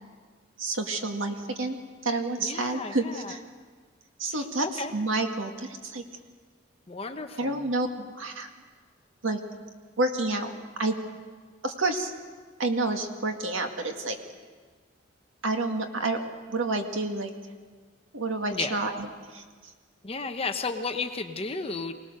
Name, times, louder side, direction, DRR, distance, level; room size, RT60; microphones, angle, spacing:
voice 1, 0.6-1.8 2.0-3.4 4.2-6.0 7.4-8.5 9.2-9.4 10.0-10.5 10.8-11.0 11.6-12.1 12.6-14.2 15.4-16.2 16.5-17.3 18.1-19.4, right 2 dB, 85° right, 4 dB, 2.1 m, -29 dB
voice 2, 2.4-3.3 4.3-4.9 6.9-7.6 18.5-18.8 20.0-21.9, left 4 dB, 30° left, 6 dB, 1.0 m, -33 dB
24.5 x 18.5 x 6.7 m, 1.5 s
head